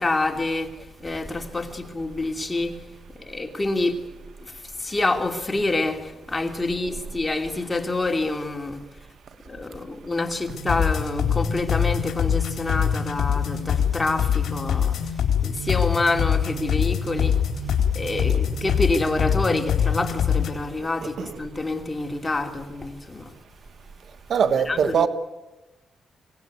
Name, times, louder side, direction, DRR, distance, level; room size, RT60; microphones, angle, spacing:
voice 1, 0.0-2.8 3.1-4.0 4.4-8.8 9.4-23.3 24.7-25.1, left 2 dB, 20° left, 2.9 m, -27 dB
sound 1, 10.5-20.5, left 7 dB, 70° left, 4.2 m, -24 dB
voice 2, 24.3-25.1, right 7 dB, 60° right, 1.4 m, -21 dB
24.5 x 18.5 x 9.5 m
cardioid pair, 110°, 0 cm